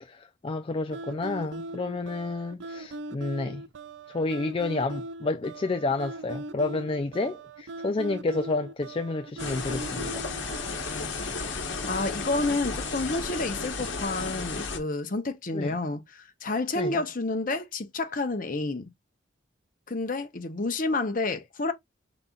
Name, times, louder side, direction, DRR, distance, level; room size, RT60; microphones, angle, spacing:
voice 1, 0.0-3.6 4.1-10.3 15.5-15.8 16.8-17.0, left 3 dB, 30° left, 0.3 m, -30 dB
sound 1, 0.9-11.0, right 2 dB, 65° right, 0.4 m, -40 dB
sound 2, 9.4-14.8, left 4 dB, 65° left, 1.2 m, -33 dB
voice 2, 10.7-11.2 11.9-18.9 19.9-21.7, left 2 dB, 45° left, 0.8 m, -30 dB
5.4 x 3.9 x 2.4 m
head